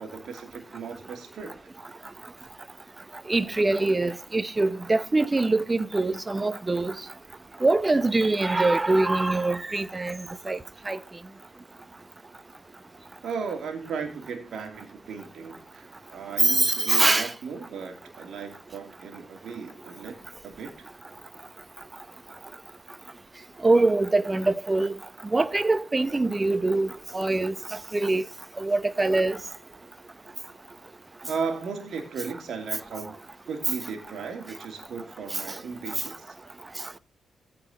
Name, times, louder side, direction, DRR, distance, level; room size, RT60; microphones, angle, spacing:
voice 1, 0.0-1.6 13.2-20.2 20.4-20.8 31.3-33.2 33.5-36.3, right 5 dB, 60° right, 2.8 m, -36 dB
voice 2, 3.3-7.0 7.6-10.6 10.9-11.0 16.4-17.3 23.6-25.0 25.3-27.5 27.9-28.2 28.6-29.4 35.3-35.4, right 2 dB, 25° right, 1.0 m, -23 dB
15.5 x 5.3 x 4.2 m
hypercardioid pair, 40°, 0 cm